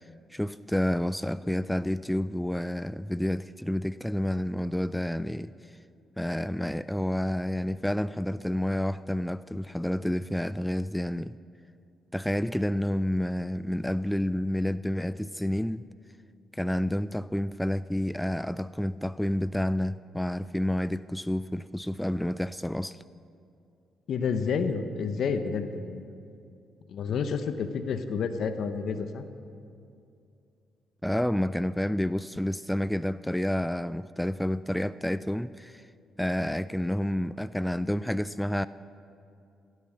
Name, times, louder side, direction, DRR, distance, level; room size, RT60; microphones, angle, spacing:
voice 1, 0.3-5.5 6.2-11.4 12.1-15.8 16.5-23.0 31.0-35.9 36.2-38.7, left 1 dB, 5° left, 15 dB, 0.3 m, -29 dB
voice 2, 24.1-26.0 26.9-29.2, left 5 dB, 70° left, 9 dB, 0.9 m, -29 dB
17.0 x 11.0 x 6.3 m, 2.5 s
supercardioid pair, 60°, 0 cm